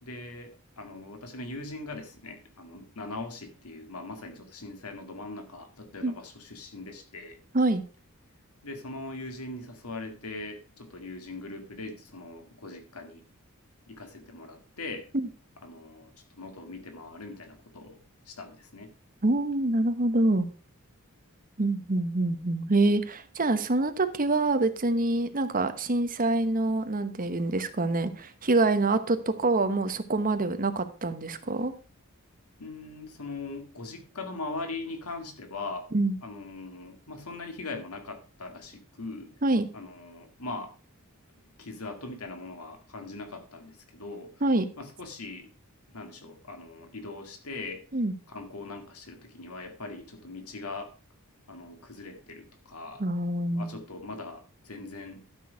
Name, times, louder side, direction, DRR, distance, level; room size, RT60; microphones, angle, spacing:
voice 1, 0.0-7.4 8.6-13.2 13.9-15.1 15.6-18.0 18.3-18.9 32.6-35.9 36.2-39.3 39.7-40.7 41.4-44.3 44.8-45.5 45.9-47.9 48.3-50.9 51.5-53.0 53.5-55.2, left 3 dB, 85° left, 5 dB, 2.1 m, -41 dB
voice 2, 19.2-20.5 21.6-31.7 35.9-36.2 39.4-39.7 44.4-44.7 47.9-48.1 53.0-53.7, right 2 dB, 40° right, 9 dB, 1.1 m, -26 dB
12.0 x 6.3 x 4.7 m, 0.35 s
head